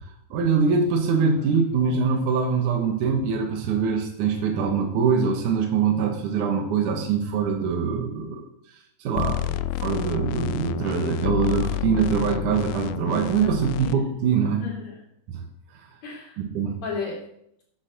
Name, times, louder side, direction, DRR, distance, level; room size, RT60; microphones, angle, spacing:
voice 1, 0.3-8.5 9.0-14.6 15.3-15.4 15.7-15.9 16.4-16.8, right 6 dB, 70° right, 3 dB, 2.7 m, -23 dB
voice 2, 1.4-1.8 13.4-13.9 14.6-14.9 16.0-16.4 16.8-17.2, left 5 dB, 55° left, -2 dB, 4.6 m, -35 dB
sound 1, 9.2-13.9, left 15 dB, 80° left, 1.8 m, -29 dB
10.0 x 8.3 x 6.6 m, 0.73 s
omnidirectional pair, 3.8 m